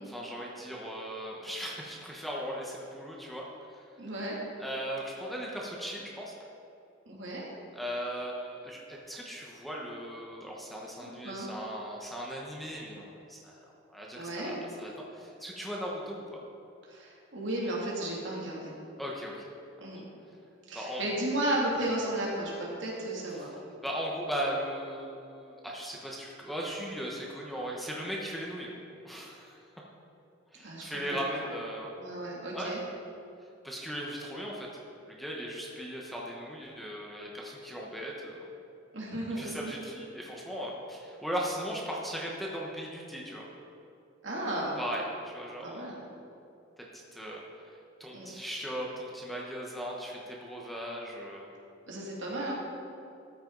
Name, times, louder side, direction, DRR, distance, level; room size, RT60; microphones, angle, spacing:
voice 1, 0.0-3.4 4.6-6.4 7.7-13.6 13.9-16.4 19.0-19.4 20.7-21.1 23.8-28.7 29.0-29.6 30.5-31.9 32.5-32.8 33.6-34.7 35.1-38.5 39.4-43.5 44.8-45.8 46.8-47.4 48.0-51.5, equal, ahead, -3 dB, 1.2 m, -38 dB
voice 2, 4.0-4.4 7.1-7.4 11.0-11.5 14.1-14.6 16.8-18.7 19.8-20.1 20.7-23.5 30.6-31.4 32.0-32.8 38.9-39.7 44.2-44.8 45.6-46.0 48.1-48.3 51.9-52.5, right 1 dB, 70° right, -4 dB, 2.7 m, -34 dB
13.5 x 8.5 x 4.0 m, 2.6 s
head